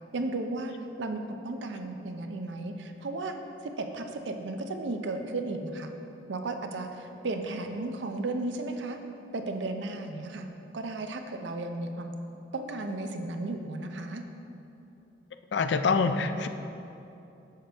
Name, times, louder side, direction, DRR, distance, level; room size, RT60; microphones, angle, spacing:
voice 1, 0.1-0.7 1.0-3.3 3.6-5.9 6.3-9.0 9.3-10.5 10.7-12.1 12.5-14.2, right 2 dB, 75° right, 6 dB, 0.6 m, -34 dB
voice 2, 15.5-16.5, left 4 dB, 65° left, 9 dB, 0.4 m, -25 dB
9.2 x 6.7 x 3.4 m, 2.9 s
head